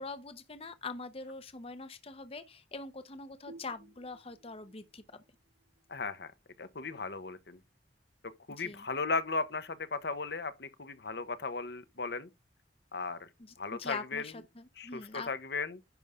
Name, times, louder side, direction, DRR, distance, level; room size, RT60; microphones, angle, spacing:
voice 1, 0.0-5.0 8.6-8.8 13.4-15.3, left 3 dB, 30° left, 0.8 m, -43 dB
sound 1, 3.5-6.9, right 2 dB, 90° right, 3.5 m, -57 dB
voice 2, 5.9-6.3 6.6-7.6 8.5-12.3 12.9-13.3 13.6-14.3 14.8-15.8, left 4 dB, 60° left, 1.0 m, -36 dB
10.5 x 5.4 x 3.6 m
head